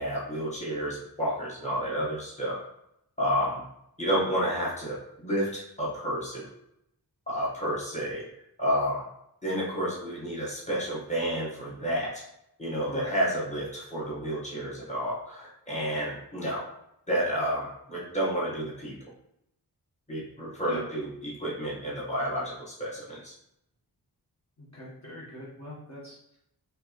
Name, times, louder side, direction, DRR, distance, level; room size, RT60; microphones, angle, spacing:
voice 1, 0.0-2.6 3.2-3.6 4.0-6.5 7.3-8.3 8.6-9.0 9.4-12.2 12.6-16.6 17.1-19.0 20.1-23.3, equal, 20° left, -6 dB, 1.4 m, -30 dB
voice 2, 24.6-26.4, left 1 dB, 45° left, -7 dB, 1.2 m, -41 dB
4.4 x 3.3 x 3.0 m, 0.78 s
wide cardioid pair, 130°, 38 cm